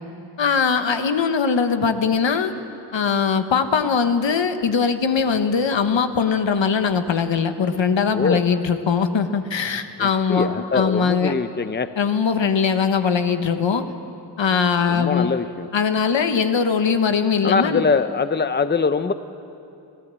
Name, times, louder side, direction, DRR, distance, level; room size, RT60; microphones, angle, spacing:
voice 1, 0.4-2.5 2.9-11.4 12.0-13.8 14.4-15.3 15.7-17.8, left 6 dB, 80° left, 8 dB, 1.2 m, -21 dB
voice 2, 10.0-11.9 14.9-15.7 17.4-19.1, left 5 dB, 25° left, 11 dB, 0.7 m, -22 dB
24.5 x 16.0 x 7.6 m, 2.6 s
wide cardioid pair, 80°, 44 cm